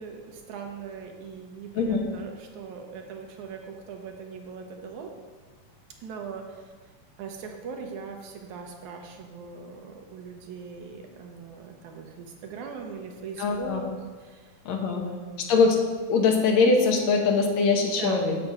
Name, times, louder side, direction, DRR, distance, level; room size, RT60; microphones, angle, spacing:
voice 1, 0.0-5.1 6.0-6.7 7.2-14.5 14.9-15.5 18.0-18.3, right 5 dB, 80° right, 3 dB, 2.4 m, -40 dB
voice 2, 1.8-2.1 13.4-13.9 14.7-15.0 15.4-15.8 16.1-18.4, left 4 dB, 70° left, 2 dB, 2.2 m, -22 dB
8.7 x 5.1 x 7.2 m, 1.4 s
omnidirectional pair, 3.4 m